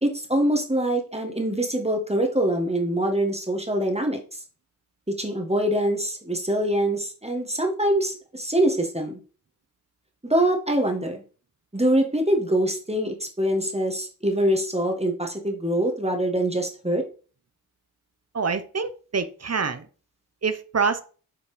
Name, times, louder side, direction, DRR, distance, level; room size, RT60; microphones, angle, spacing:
voice 1, 0.0-4.2 5.2-9.2 10.2-11.2 11.7-17.0, right 1 dB, 15° right, 1.7 m, -24 dB
voice 2, 18.3-19.9 20.4-21.0, right 5 dB, 40° right, 0.9 m, -26 dB
7.2 x 4.3 x 5.1 m
wide cardioid pair, 55°, 37 cm